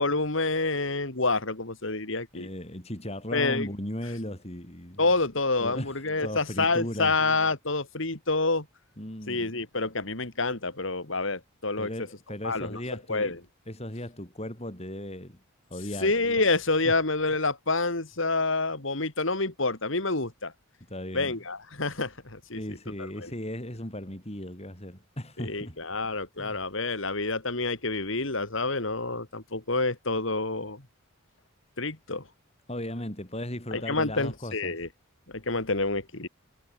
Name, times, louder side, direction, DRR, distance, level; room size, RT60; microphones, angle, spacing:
voice 1, 0.0-2.5 3.3-3.7 5.0-8.7 9.3-11.9 12.4-12.8 13.1-13.4 16.0-20.5 21.1-22.8 23.2-23.3 25.4-30.8 31.8-32.2 33.7-34.9 35.3-36.3, left 3 dB, 60° left, 2.8 m, -28 dB
voice 2, 2.3-5.1 5.6-7.2 9.0-9.5 11.8-13.4 13.7-15.4 15.7-16.1 16.8-16.9 20.9-21.3 22.5-25.8 26.4-26.6 32.7-34.8, left 1 dB, 30° left, 6.1 m, -37 dB
head